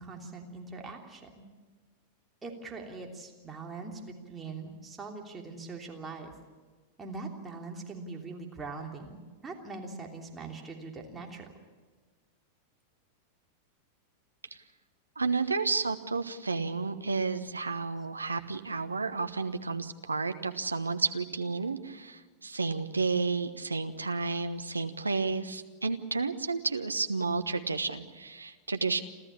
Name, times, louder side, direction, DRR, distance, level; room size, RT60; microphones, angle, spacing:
voice 1, 0.0-1.4 2.4-6.3 7.0-11.4, right 3 dB, 15° right, 1 dB, 3.2 m, -42 dB
voice 2, 15.2-29.0, right 4 dB, 80° right, 8 dB, 1.2 m, -31 dB
29.0 x 13.5 x 8.6 m, 1.4 s
figure-of-eight pair, 90°, 0 cm